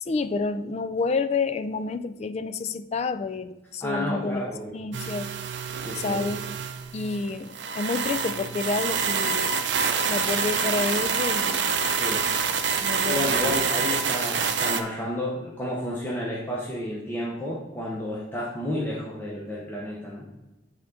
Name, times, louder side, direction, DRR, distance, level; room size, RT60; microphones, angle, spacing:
voice 1, 0.1-4.5 4.7-5.3 6.0-6.4 6.9-9.5 10.1-11.8 12.8-13.3, left 4 dB, 35° left, 11 dB, 0.3 m, -29 dB
voice 2, 3.8-4.8 5.8-6.3 11.9-12.3 13.0-20.3, left 1 dB, 10° left, -5 dB, 0.9 m, -31 dB
sound 1, 4.9-14.8, right 6 dB, 75° right, 0.6 m, -26 dB
8.3 x 3.7 x 3.9 m, 1.0 s
head